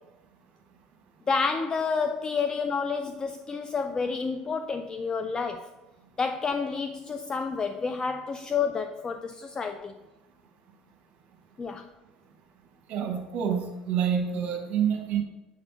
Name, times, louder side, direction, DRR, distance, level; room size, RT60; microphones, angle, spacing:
voice 1, 1.3-5.7 6.2-9.9 11.6-11.8, left 5 dB, 25° left, 7 dB, 0.3 m, -29 dB
voice 2, 12.9-15.2, right 8 dB, 50° right, 3 dB, 1.1 m, -27 dB
6.9 x 4.1 x 3.4 m, 1.1 s
hypercardioid pair, 70°, 3 cm